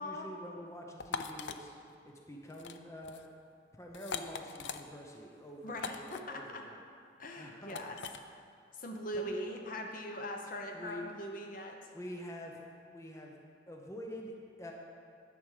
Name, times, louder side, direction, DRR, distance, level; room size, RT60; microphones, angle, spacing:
voice 1, 0.0-1.7 2.0-3.2 3.7-6.8 7.4-7.8 9.1-9.2 10.7-11.0 11.9-12.7 12.9-13.4 13.7-14.3 14.6-14.7, equal, 15° left, 0 dB, 0.8 m, -46 dB
sound 1, 1.0-1.6 2.5-2.8 3.0-3.3 3.9-4.8 5.8-6.2 7.7-8.2, left 6 dB, 65° left, 0.5 m, -40 dB
voice 2, 5.6-6.6 7.2-8.0 8.7-11.8, equal, 45° left, 2 dB, 0.9 m, -41 dB
10.5 x 7.0 x 5.0 m, 2.2 s
head